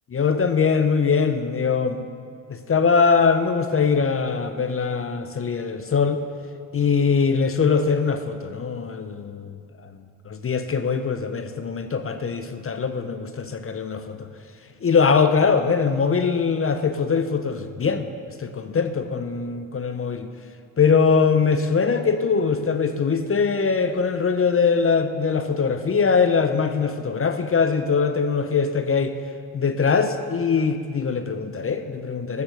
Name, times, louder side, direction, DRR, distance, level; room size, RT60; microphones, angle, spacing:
voice 1, 0.1-2.1 2.5-6.2 6.7-9.5 10.3-14.3 14.8-18.1 18.4-20.3 20.8-29.2 29.5-32.4, left 5 dB, 30° left, 9 dB, 0.8 m, -22 dB
13.5 x 7.1 x 6.6 m, 2.2 s
hypercardioid pair, 60°, 43 cm